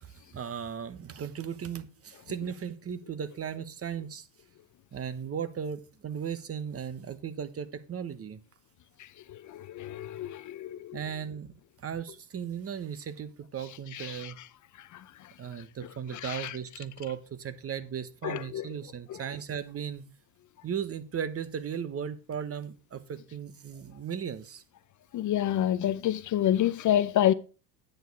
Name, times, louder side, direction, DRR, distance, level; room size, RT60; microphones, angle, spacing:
voice 1, 0.0-4.3 4.9-8.4 10.9-11.5 11.8-14.4 15.4-20.0 20.6-24.6, right 8 dB, 30° right, 1.1 m, -36 dB
voice 2, 9.5-11.0 14.1-14.2 16.2-16.5 18.2-18.6 25.1-27.3, left 11 dB, 45° left, 0.6 m, -27 dB
9.4 x 6.5 x 4.7 m
supercardioid pair, 85°, 44 cm